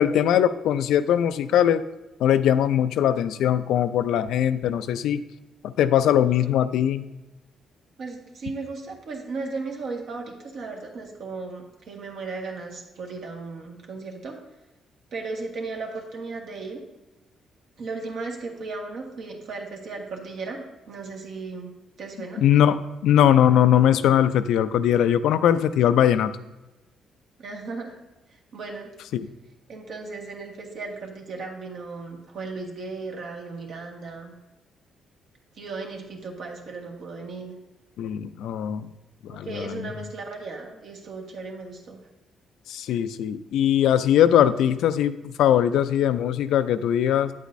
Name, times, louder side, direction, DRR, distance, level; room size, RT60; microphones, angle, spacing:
voice 1, 0.0-1.8 2.2-5.2 5.6-7.0 22.4-26.3 29.1-29.3 38.0-38.9 39.2-39.9 42.7-47.3, left 10 dB, 85° left, 12 dB, 0.4 m, -21 dB
voice 2, 8.0-14.4 15.1-16.8 17.8-21.7 22.0-22.4 27.4-28.0 28.3-28.9 29.7-34.3 35.5-37.5 39.3-42.0, right 3 dB, 65° right, 0 dB, 1.5 m, -36 dB
8.8 x 8.2 x 2.6 m, 1.0 s
cardioid pair, 90°, 0 cm